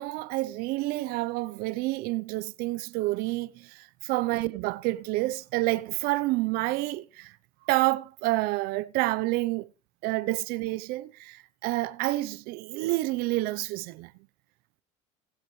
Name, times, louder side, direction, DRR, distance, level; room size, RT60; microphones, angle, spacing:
voice 1, 0.0-7.3 7.7-9.7 10.0-14.1, right 19 dB, 60° right, 0.7 m, -29 dB
20.0 x 7.3 x 3.2 m
supercardioid pair, 115°, 17 cm